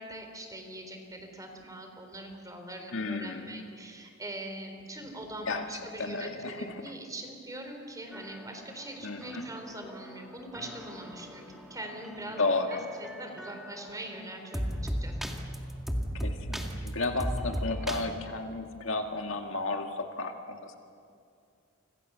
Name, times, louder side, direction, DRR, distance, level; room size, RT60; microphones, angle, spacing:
voice 1, 0.0-12.4 12.7-15.2, right 1 dB, 15° right, 5 dB, 3.8 m, -42 dB
voice 2, 2.9-3.7 5.0-5.1 5.5-5.7 6.0-6.8 9.0-9.5 12.4-12.9 16.1-20.8, left 3 dB, 65° left, 4 dB, 2.0 m, -33 dB
sound 1, 8.1-18.0, equal, ahead, 2.1 m, -37 dB
29.5 x 26.5 x 7.0 m, 2.4 s
head